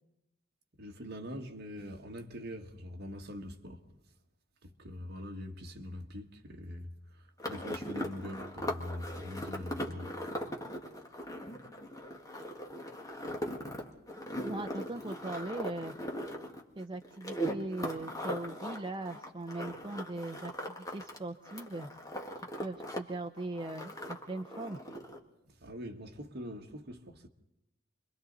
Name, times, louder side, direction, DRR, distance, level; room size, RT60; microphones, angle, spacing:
voice 1, 0.8-3.8 4.6-10.1 25.6-27.3, equal, 50° right, 1.7 m, -43 dB
sound 1, 7.4-21.2 21.4-23.0 23.2-25.2, equal, 15° left, 1.9 m, -40 dB
voice 2, 14.4-15.9 16.8-21.9 22.4-24.8, right 2 dB, 25° right, 0.7 m, -40 dB
30.0 x 24.0 x 4.1 m
head